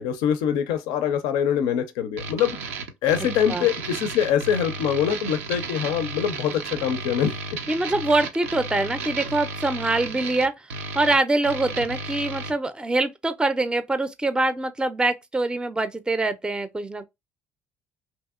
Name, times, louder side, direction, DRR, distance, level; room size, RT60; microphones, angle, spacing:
voice 1, 0.0-2.6 3.0-7.3, left 9 dB, 75° left, 0.4 m, -24 dB
sound 1, 2.2-12.5, right 3 dB, 90° right, 0.4 m, -34 dB
voice 2, 7.7-10.7 10.9-17.1, right 2 dB, 10° right, 0.4 m, -24 dB
2.8 x 2.7 x 2.3 m
hypercardioid pair, 60°, 7 cm